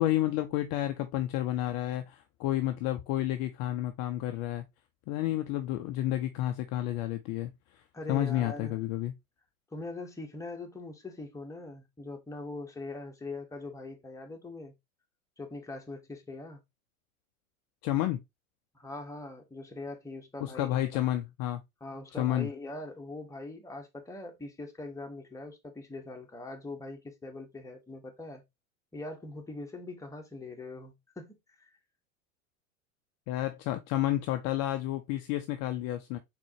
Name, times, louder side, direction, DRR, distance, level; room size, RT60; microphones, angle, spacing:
voice 1, 0.0-4.6 5.1-7.8 8.1-9.1 17.8-18.2 20.4-21.6 22.2-22.5 33.3-36.2, left 13 dB, 40° left, 0.6 m, -30 dB
voice 2, 7.9-8.8 9.7-14.7 15.4-16.6 18.7-21.0 21.8-28.4 28.9-31.7, left 2 dB, 5° left, 1.2 m, -42 dB
4.2 x 4.2 x 2.9 m
hypercardioid pair, 95°, 41 cm